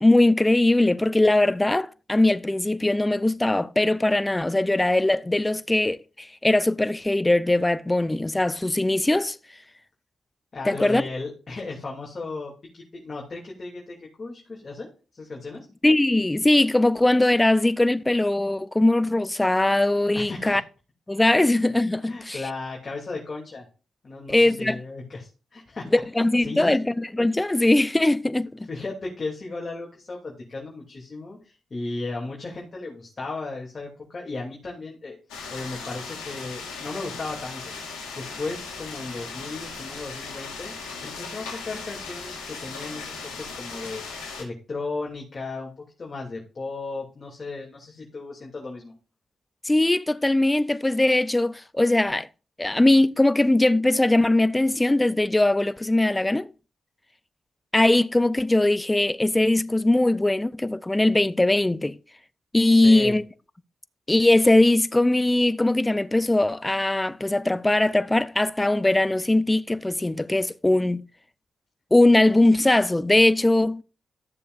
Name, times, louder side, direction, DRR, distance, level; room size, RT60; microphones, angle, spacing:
voice 1, 0.0-9.4 10.7-11.0 15.8-20.6 21.1-22.4 24.3-24.8 25.9-28.7 49.6-52.3 52.6-56.5 57.7-62.0 62.5-63.2 64.1-71.0 71.9-73.8, left 2 dB, 20° left, 0.6 m, -20 dB
voice 2, 10.5-14.9 15.1-15.7 20.1-20.6 22.0-23.6 24.0-26.8 28.7-35.2 35.5-37.7 38.1-40.7 41.0-48.9 62.7-63.2, left 3 dB, 45° left, 2.8 m, -35 dB
sound 1, 35.3-44.4, left 4 dB, 90° left, 2.4 m, -37 dB
13.5 x 7.0 x 2.6 m
hypercardioid pair, 40°, 0 cm